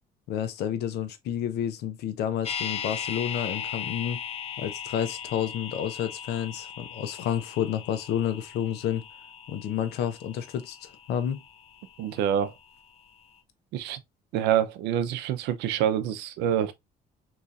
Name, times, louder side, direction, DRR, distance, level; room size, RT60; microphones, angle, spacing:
voice 1, 0.3-4.2 4.6-9.0 9.5-11.4, left 9 dB, 75° left, 0.7 m, -30 dB
sound 1, 2.4-12.5 12.8-12.9, left 8 dB, 35° left, 0.6 m, -38 dB
voice 2, 12.0-12.5 13.7-14.0 14.3-16.7, right 10 dB, 85° right, 0.6 m, -26 dB
4.0 x 3.0 x 2.4 m
cardioid pair, 110°, 17 cm